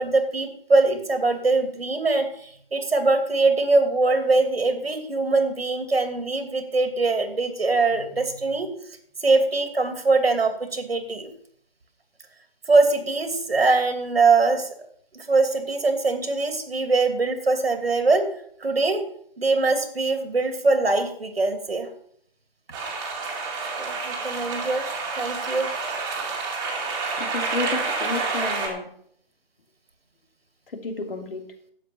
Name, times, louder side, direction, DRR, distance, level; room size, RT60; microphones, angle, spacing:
voice 1, 0.0-8.7 9.2-11.3 12.7-14.7 15.3-18.3 18.6-19.0 19.4-21.9 23.8-24.9 25.1-25.7, right 3 dB, 90° right, 6 dB, 2.8 m, -22 dB
sound 1, 22.7-28.7, right 4 dB, 10° right, 2.1 m, -29 dB
voice 2, 27.2-28.9 30.7-31.4, left 3 dB, 70° left, 4 dB, 2.9 m, -31 dB
12.0 x 8.4 x 5.9 m, 0.65 s
hypercardioid pair, 160°, 29 cm